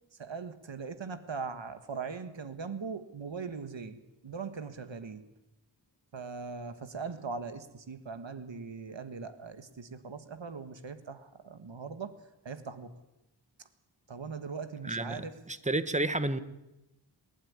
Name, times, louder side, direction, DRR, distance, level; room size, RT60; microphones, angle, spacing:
voice 1, 0.2-5.2 6.1-12.1 12.4-12.9 14.1-15.4, right 5 dB, 90° right, 10 dB, 1.6 m, -40 dB
voice 2, 14.8-16.4, right 2 dB, 15° right, 11 dB, 1.4 m, -31 dB
28.0 x 12.0 x 9.7 m, 0.93 s
wide cardioid pair, 60°, 44 cm